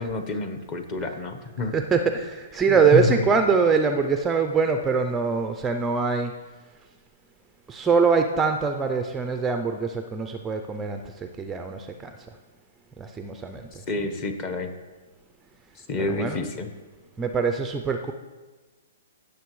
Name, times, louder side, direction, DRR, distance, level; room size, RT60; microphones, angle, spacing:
voice 1, 0.0-1.7 2.7-3.2 13.9-14.7 15.8-16.7, left 2 dB, 30° left, 7 dB, 1.0 m, -28 dB
voice 2, 1.7-6.3 7.7-12.1 13.0-13.8 16.0-16.5 17.2-18.1, right 5 dB, 10° right, 6 dB, 0.4 m, -23 dB
16.5 x 6.7 x 3.1 m, 1.3 s
hypercardioid pair, 155°, 0 cm